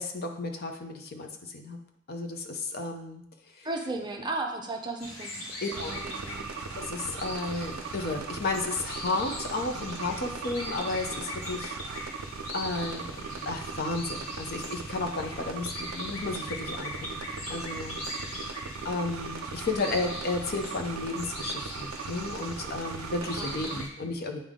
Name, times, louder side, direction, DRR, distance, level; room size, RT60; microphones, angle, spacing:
voice 1, 0.0-1.8 2.1-3.2 3.6-3.7 5.6-5.9 6.8-11.8 12.5-13.2 13.5-18.0 18.3-24.4, left 3 dB, 50° left, 4 dB, 0.7 m, -33 dB
voice 2, 3.6-5.4 5.7-6.4 23.2-23.7, right 2 dB, 20° right, 2 dB, 0.6 m, -35 dB
sound 1, 5.0-23.9, left 1 dB, 80° left, 1.3 m, -41 dB
sound 2, 5.7-23.8, right 5 dB, 80° right, 0.4 m, -39 dB
8.7 x 3.6 x 3.6 m, 0.75 s
head